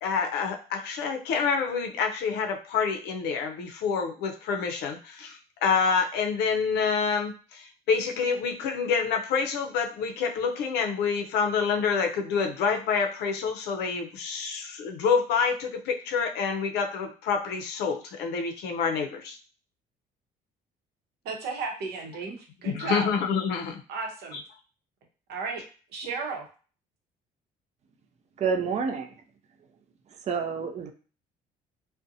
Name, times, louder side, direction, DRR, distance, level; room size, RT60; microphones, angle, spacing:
voice 1, 0.0-19.4 22.7-23.8 24.3-24.4, left 5 dB, 80° left, 4 dB, 0.5 m, -27 dB
voice 2, 21.2-23.1 23.9-24.4 25.3-25.6 25.9-26.4, right 4 dB, 75° right, 1 dB, 0.8 m, -34 dB
voice 3, 28.4-29.1 30.3-30.9, right 5 dB, 40° right, 4 dB, 0.5 m, -28 dB
2.5 x 2.1 x 2.6 m, 0.38 s
cardioid pair, 110°, 17 cm